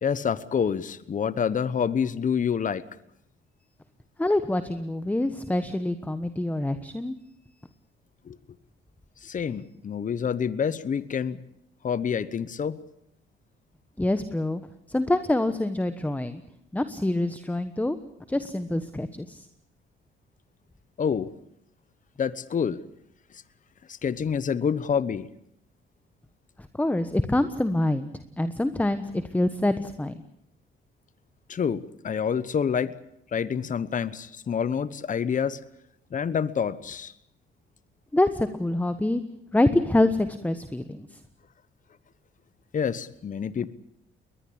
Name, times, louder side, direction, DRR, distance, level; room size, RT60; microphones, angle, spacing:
voice 1, 0.0-2.8 8.2-8.4 9.2-11.4 11.8-12.8 21.0-21.3 22.2-22.8 23.3-23.4 23.9-25.3 31.5-32.9 33.3-35.6 36.1-37.1 42.7-43.7, left 7 dB, 40° left, 16 dB, 1.0 m, -27 dB
voice 2, 4.2-7.2 14.0-14.6 14.9-16.4 16.7-18.0 18.3-19.4 26.8-28.1 28.4-30.1 38.1-39.2 39.5-41.1, left 1 dB, 10° left, 11 dB, 1.3 m, -25 dB
21.5 x 20.5 x 8.7 m, 0.75 s
cardioid pair, 90°, 20 cm